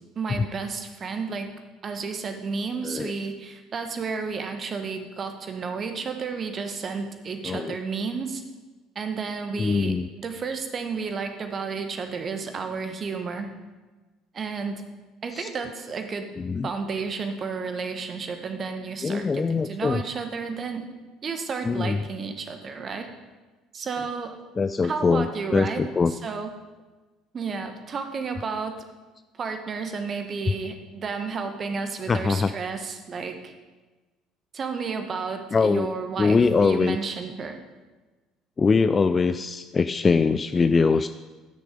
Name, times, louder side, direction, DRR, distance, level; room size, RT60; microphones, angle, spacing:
voice 1, 0.0-1.5 1.8-8.4 8.9-13.5 14.3-14.8 15.2-16.3 16.6-20.9 21.2-23.1 23.7-24.4 24.8-25.8 26.2-26.5 27.3-28.8 29.4-33.5 34.5-37.6, right 5 dB, 40° right, 6 dB, 1.3 m, -32 dB
voice 2, 7.4-7.8 9.6-10.1 15.3-15.5 16.4-16.7 19.0-20.0 21.6-22.0 24.6-26.1 32.1-32.5 35.5-35.9 36.2-37.0 38.6-41.1, left 4 dB, 30° left, 11 dB, 0.4 m, -22 dB
12.5 x 6.5 x 5.2 m, 1.2 s
figure-of-eight pair, 55°, 0 cm